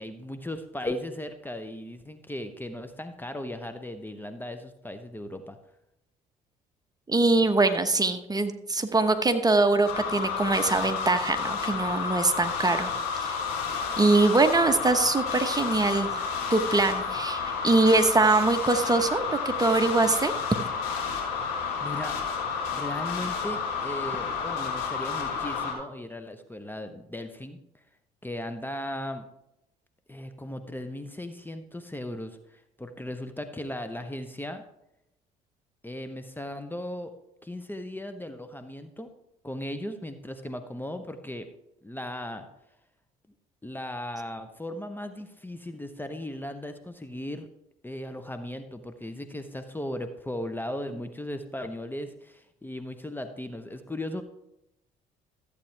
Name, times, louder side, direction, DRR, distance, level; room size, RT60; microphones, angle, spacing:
voice 1, 0.0-5.6 21.3-22.2 22.7-27.8 28.2-29.2 30.1-34.6 35.8-37.1 37.4-39.1 39.4-41.5 41.8-42.5 43.6-47.5 47.8-54.2, left 1 dB, 10° left, 9 dB, 1.0 m, -37 dB
voice 2, 7.1-12.9 14.0-16.1 16.5-20.3, right 3 dB, 20° right, 7 dB, 1.1 m, -23 dB
sound 1, 9.9-25.7, left 6 dB, 75° left, 3.5 m, -31 dB
14.0 x 8.4 x 3.4 m, 0.84 s
hypercardioid pair, 60°, 19 cm